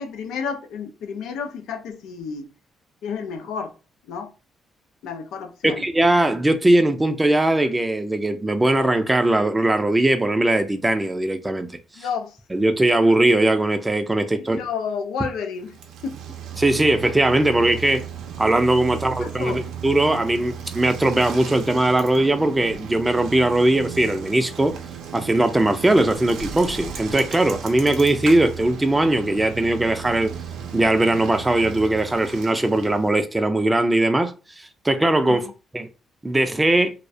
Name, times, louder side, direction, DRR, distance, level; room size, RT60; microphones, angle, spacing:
voice 1, 0.0-2.5 3.0-3.7 4.0-4.3 5.0-5.8 12.0-12.4 14.4-16.2 19.1-19.6 35.3-35.5, left 6 dB, 85° left, 0.4 m, -31 dB
voice 2, 5.6-11.7 12.5-14.6 16.6-18.0 18.4-24.8 25.1-30.3 30.7-35.4 35.7-35.9 36.2-36.9, right 1 dB, 15° right, 0.4 m, -20 dB
Bicycle, 15.6-33.2, right 7 dB, 80° right, 0.5 m, -35 dB
2.3 x 2.1 x 2.6 m
cardioid pair, 90°, 0 cm